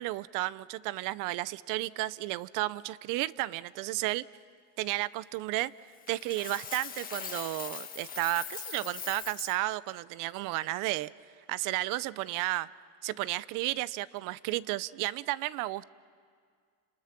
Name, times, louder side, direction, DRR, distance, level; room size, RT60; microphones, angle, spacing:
voice 1, 0.0-4.3 4.8-5.7 6.1-11.1 11.5-12.7 13.0-15.8, right 17 dB, 55° right, 20 dB, 0.6 m, -33 dB
Coin (dropping), 6.1-9.6, left 7 dB, 20° left, 1.8 m, -41 dB
29.5 x 27.5 x 6.0 m, 2.1 s
cardioid pair, 155°, 38 cm